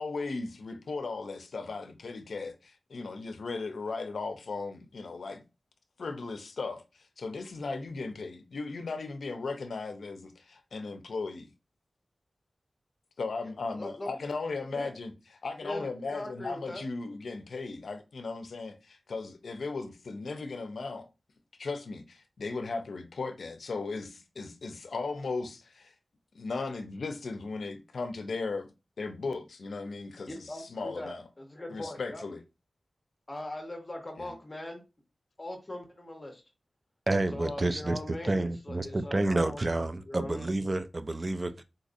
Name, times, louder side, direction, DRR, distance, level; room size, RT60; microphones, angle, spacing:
voice 1, 0.0-5.4 6.0-6.8 7.2-11.5 13.2-15.1 15.4-21.1 21.6-25.9 26.3-28.7 29.0-31.2 31.7-32.4 34.2-34.3, left 3 dB, 80° left, 0.5 m, -37 dB
voice 2, 13.7-14.1 14.7-14.9 15.6-16.8 30.3-32.2 33.3-34.8 35.4-36.4 37.3-39.6 40.0-40.5, left 1 dB, 30° left, 0.8 m, -40 dB
voice 3, 37.1-41.6, right 2 dB, 35° right, 0.3 m, -29 dB
3.9 x 2.5 x 2.5 m
wide cardioid pair, 85°, 0 cm